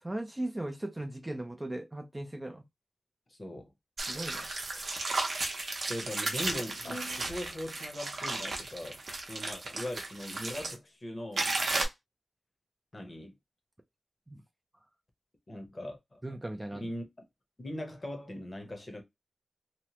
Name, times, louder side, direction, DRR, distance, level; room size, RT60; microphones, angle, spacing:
voice 1, 0.0-2.6 4.1-4.5 14.3-14.4 16.2-16.9, right 1 dB, 15° right, 0.3 m, -38 dB
voice 2, 3.3-3.7 5.9-9.0 9.3-11.5 12.9-13.3 15.5-16.2 16.7-17.1 17.6-19.0, left 1 dB, 30° left, 0.7 m, -40 dB
sound 1, 4.0-10.7 11.4-11.8, right 2 dB, 55° right, 0.7 m, -34 dB
2.9 x 2.1 x 2.8 m
wide cardioid pair, 150°, 0 cm